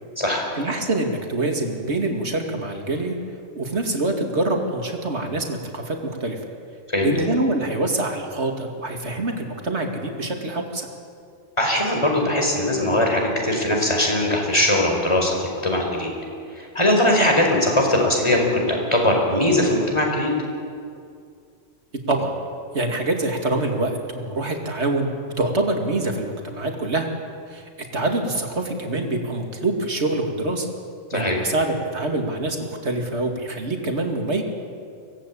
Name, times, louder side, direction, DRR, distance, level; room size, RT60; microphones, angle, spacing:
voice 1, 0.6-3.2 3.5-6.4 7.0-10.9 22.1-22.3 22.7-25.1 25.4-27.1 27.5-27.6 27.9-30.7 31.1-34.4, right 2 dB, 55° right, 2 dB, 2.7 m, -25 dB
voice 2, 11.6-15.4 15.6-16.1 16.6-20.3 31.1-31.4, left 1 dB, 20° left, 1 dB, 4.6 m, -20 dB
24.0 x 17.5 x 8.6 m, 2.3 s
omnidirectional pair, 1.4 m